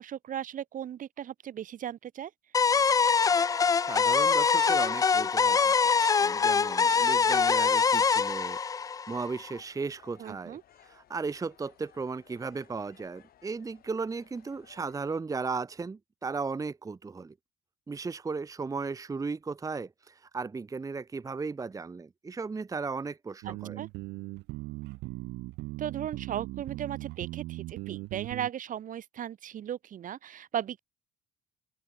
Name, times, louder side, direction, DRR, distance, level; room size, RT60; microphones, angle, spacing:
voice 1, 0.0-2.3 10.2-10.6 23.4-23.9 25.8-30.8, right 10 dB, 50° right, 1.7 m, -36 dB
sound 1, 2.5-9.5, left 5 dB, 20° left, 0.4 m, -24 dB
voice 2, 3.8-5.7 6.2-17.3 17.9-23.8, right 4 dB, 20° right, 1.0 m, -36 dB
sound 2, 9.5-15.1, left 12 dB, 60° left, 5.7 m, -60 dB
sound 3, 23.4-28.5, right 21 dB, 85° right, 0.5 m, -39 dB
open air
cardioid pair, 110°, 17 cm